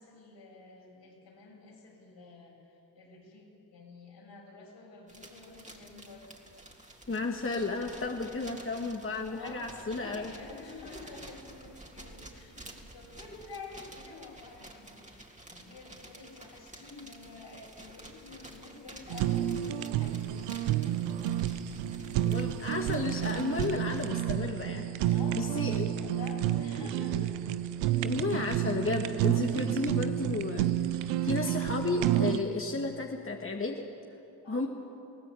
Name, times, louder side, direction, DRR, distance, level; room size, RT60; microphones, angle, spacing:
voice 1, 0.0-6.3 9.3-22.3 25.1-27.4 34.4-34.7, left 3 dB, 70° left, -2 dB, 7.8 m, -49 dB
sound 1, 5.1-24.1, right 1 dB, 15° right, 3.7 m, -51 dB
voice 2, 7.1-10.3 22.2-25.9 28.0-33.9 34.5-34.7, left 3 dB, 30° left, 1 dB, 2.1 m, -33 dB
Fire, 19.1-32.4, right 12 dB, 90° right, 0.7 m, -30 dB
23.0 x 17.5 x 8.7 m, 2.7 s
hypercardioid pair, 45°, 44 cm